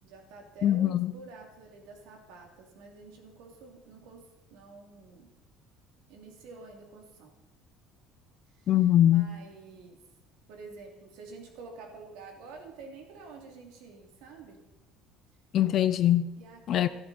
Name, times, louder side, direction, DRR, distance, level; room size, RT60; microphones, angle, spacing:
voice 1, 0.0-5.3 6.1-7.3 8.5-8.7 9.0-10.0 10.5-14.6 16.4-16.9, right 4 dB, 80° right, 2 dB, 2.7 m, -48 dB
voice 2, 0.6-1.1 8.7-9.3 15.5-16.2 16.7-16.9, left 12 dB, 45° left, 13 dB, 0.4 m, -22 dB
13.0 x 12.0 x 4.2 m, 0.99 s
cardioid pair, 145°, 0 cm